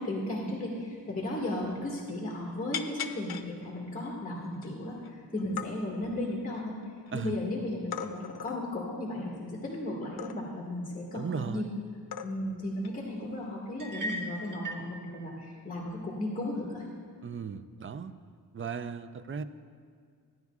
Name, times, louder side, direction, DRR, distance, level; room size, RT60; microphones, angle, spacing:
voice 1, 0.0-6.7 7.1-11.7 12.2-16.9, left 1 dB, 20° left, -5 dB, 1.8 m, -35 dB
sound 1, 0.8-0.9 1.2-1.3 1.6-2.2 2.7-3.5 4.1-4.2 4.5-5.1 5.4-5.7 6.3-7.1 7.9-8.6 10.2-10.6 11.6-11.7 12.1-12.6 12.8-13.0 14.1-14.4, left 8 dB, 75° left, 0.6 m, -39 dB
voice 2, 11.1-11.7 17.2-18.1 18.5-19.4, right 6 dB, 35° right, 11 dB, 0.5 m, -36 dB
sound 2, 13.8-14.9, right 1 dB, 60° right, 1.4 m, -37 dB
16.0 x 10.5 x 2.4 m, 2.1 s
wide cardioid pair, 85°, 37 cm